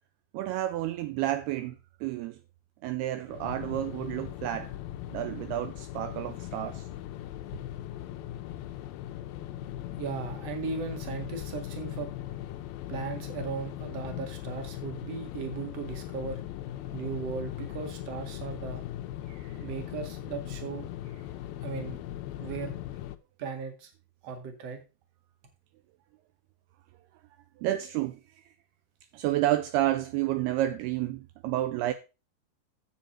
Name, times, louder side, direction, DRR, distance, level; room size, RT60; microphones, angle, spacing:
voice 1, 0.3-2.4 2.8-4.7 5.1-6.9 19.3-19.6 27.6-28.2 29.1-31.9, right 14 dB, 80° right, 2.5 m, -30 dB
sound 1, 3.3-23.2, left 13 dB, 85° left, 2.1 m, -39 dB
voice 2, 10.0-12.1 12.9-16.4 16.9-18.8 19.6-20.9 21.6-22.0 22.4-22.7 23.4-23.9 24.2-24.8, right 5 dB, 45° right, 2.6 m, -37 dB
10.0 x 7.9 x 4.4 m
omnidirectional pair, 5.0 m